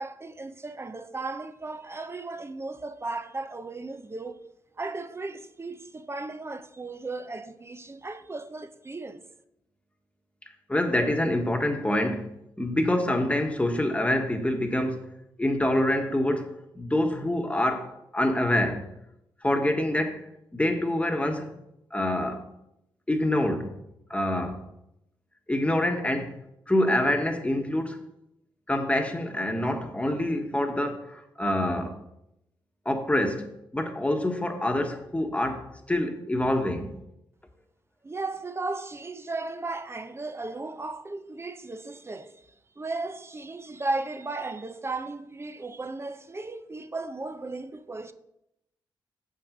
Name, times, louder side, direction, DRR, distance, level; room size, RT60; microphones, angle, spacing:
voice 1, 0.0-4.4 4.8-9.2 38.0-48.1, right 3 dB, 30° right, 0.7 m, -35 dB
voice 2, 10.7-12.3 12.6-15.1 15.4-18.9 19.4-20.3 20.5-21.5 21.9-22.5 23.1-23.7 24.1-24.7 25.5-26.3 26.7-28.0 28.7-32.0 32.8-36.9, left 1 dB, 15° left, 1.3 m, -26 dB
7.2 x 6.3 x 5.1 m
cardioid pair, 55°, 9 cm